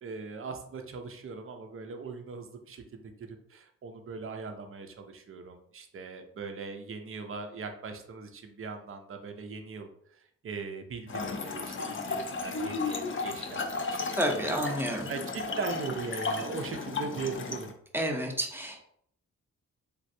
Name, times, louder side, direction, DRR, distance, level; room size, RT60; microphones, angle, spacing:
voice 1, 0.0-3.1 3.5-14.1 14.5-14.6 15.1-17.7, right 4 dB, 40° right, 5 dB, 0.6 m, -39 dB
Trickle dribble / Fill (with liquid), 11.1-17.7, left 4 dB, 35° left, 0.6 m, -34 dB
voice 2, 14.1-15.1 17.9-18.8, equal, 5° right, 1 dB, 0.8 m, -30 dB
3.2 x 2.4 x 2.6 m, 0.67 s
supercardioid pair, 40°, 35 cm